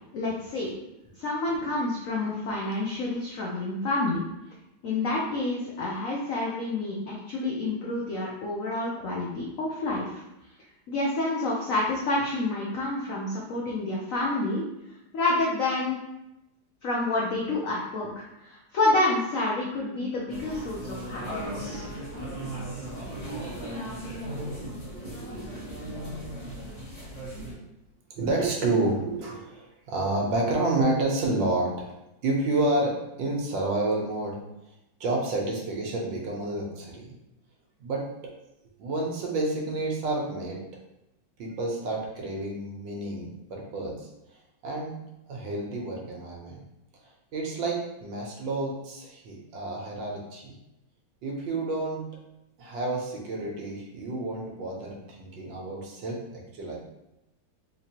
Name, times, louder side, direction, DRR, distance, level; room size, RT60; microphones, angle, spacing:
voice 1, 0.1-0.7 1.2-4.2 4.8-10.2 10.9-14.6 15.1-16.0 16.8-21.8, left 2 dB, 75° left, -3 dB, 0.7 m, -28 dB
sound 1, 20.3-27.5, right 1 dB, 25° left, 0.9 m, -37 dB
voice 2, 28.1-31.9 32.2-34.4 35.0-37.2 37.8-38.1 38.8-40.6 41.4-44.1 44.6-45.0 45.3-46.6 47.3-50.5 51.2-52.1 52.6-56.8, right 2 dB, 75° right, -1 dB, 1.4 m, -29 dB
4.0 x 2.9 x 2.8 m, 0.90 s
omnidirectional pair, 2.2 m